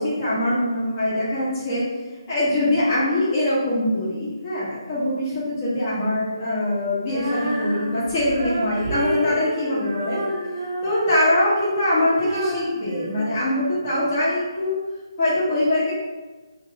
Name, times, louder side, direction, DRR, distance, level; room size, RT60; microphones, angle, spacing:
voice 1, 0.0-1.8 2.3-10.3 10.8-14.8 15.2-15.9, left 1 dB, 30° left, -11 dB, 1.0 m, -23 dB
Female singing, 7.0-14.1, right 1 dB, 45° right, 0.7 m, -30 dB
3.0 x 2.9 x 2.7 m, 1.3 s
figure-of-eight pair, 155°, 2 cm